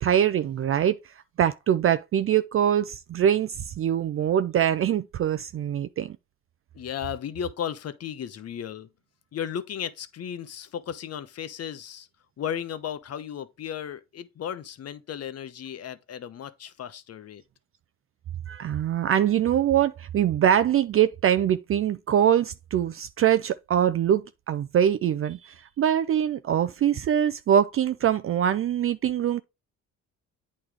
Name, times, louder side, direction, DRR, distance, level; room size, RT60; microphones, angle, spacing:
voice 1, 0.0-6.2 18.5-29.4, right 10 dB, 45° right, 0.4 m, -23 dB
voice 2, 6.7-8.9 9.3-12.1 12.4-17.4, left 9 dB, 55° left, 0.9 m, -35 dB
8.6 x 3.2 x 4.8 m
cardioid pair, 90°, 30 cm